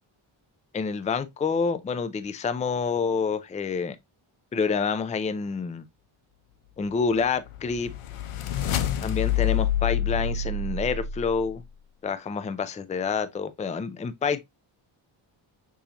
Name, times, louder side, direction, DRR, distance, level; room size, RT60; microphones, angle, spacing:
voice 1, 0.7-4.0 4.5-5.9 6.8-7.9 9.0-11.6 12.0-14.4, left 5 dB, 15° left, 0.3 m, -28 dB
sound 1, 7.2-11.5, left 8 dB, 85° left, 0.8 m, -27 dB
6.9 x 2.7 x 2.8 m
wide cardioid pair, 135°, 48 cm